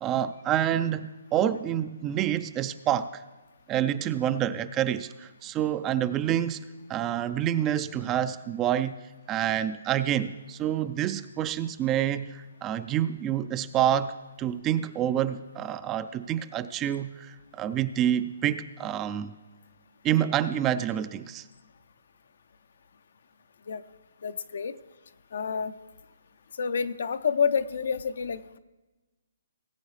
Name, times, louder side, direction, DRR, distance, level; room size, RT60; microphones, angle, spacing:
voice 1, 0.0-3.2 3.7-6.6 6.9-8.9 9.3-14.1 14.4-19.4 20.0-21.4, right 11 dB, 20° right, 13 dB, 0.4 m, -27 dB
voice 2, 24.2-24.8 25.3-25.7 26.6-28.6, left 6 dB, 65° left, 13 dB, 0.6 m, -28 dB
18.5 x 8.5 x 3.3 m, 1.2 s
hypercardioid pair, 155°, 0 cm